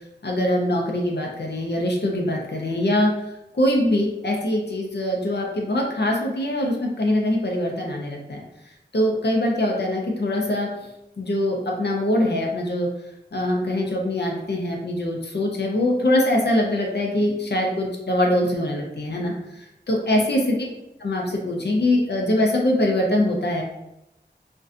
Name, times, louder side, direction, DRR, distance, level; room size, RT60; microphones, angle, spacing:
voice 1, 0.2-3.1 3.5-8.4 8.9-10.7 11.2-12.9 13.3-20.6 21.0-23.6, left 1 dB, 65° left, -1 dB, 0.5 m, -23 dB
2.5 x 2.2 x 2.4 m, 0.88 s
wide cardioid pair, 45°, 19 cm